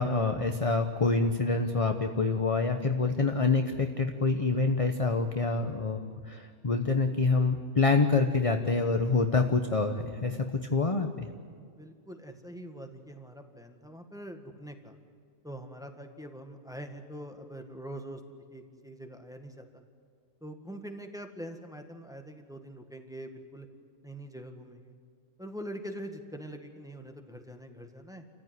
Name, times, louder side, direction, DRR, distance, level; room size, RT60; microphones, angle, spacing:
voice 1, 0.0-6.0 6.3-11.3, left 3 dB, 25° left, 6 dB, 0.9 m, -26 dB
voice 2, 11.6-15.0 15.4-18.2 18.5-19.8 20.4-23.7 24.0-24.9 25.4-28.2, right 1 dB, ahead, 4 dB, 1.7 m, -44 dB
28.5 x 15.0 x 9.6 m, 2.2 s
omnidirectional pair, 1.5 m